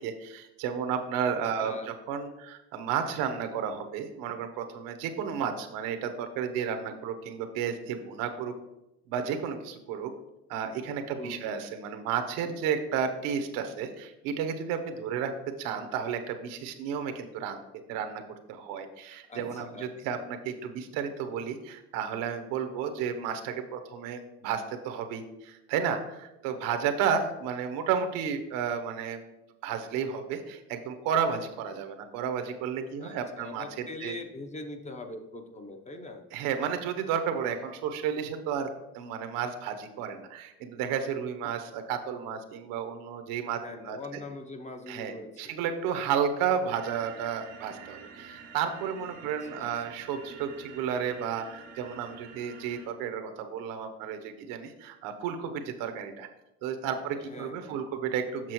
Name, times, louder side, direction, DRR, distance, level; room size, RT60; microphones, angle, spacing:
voice 1, 0.0-8.5 9.1-10.1 10.5-15.3 15.6-17.6 17.9-18.2 18.5-29.2 29.6-33.6 34.0-34.1 36.3-38.7 38.9-44.0 44.9-56.3 56.6-58.5, right 7 dB, 75° right, 7 dB, 0.9 m, -32 dB
voice 2, 1.2-1.9 11.1-11.6 19.3-20.3 33.0-36.2 43.6-45.5 49.2-49.7 57.1-57.8, left 2 dB, 20° left, 6 dB, 0.8 m, -43 dB
sound 1, 46.7-52.9, right 5 dB, 90° right, 1.8 m, -48 dB
7.4 x 6.0 x 3.0 m, 0.93 s
supercardioid pair, 100°, 34 cm